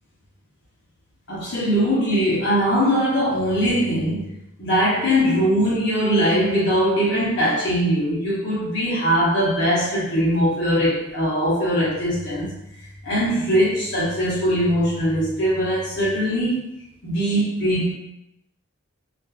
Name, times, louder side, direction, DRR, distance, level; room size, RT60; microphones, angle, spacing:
voice 1, 1.3-4.3 4.6-12.5 13.0-16.6 17.0-17.9, equal, 50° left, -8 dB, 0.9 m, -21 dB
2.5 x 2.5 x 2.3 m, 0.84 s
head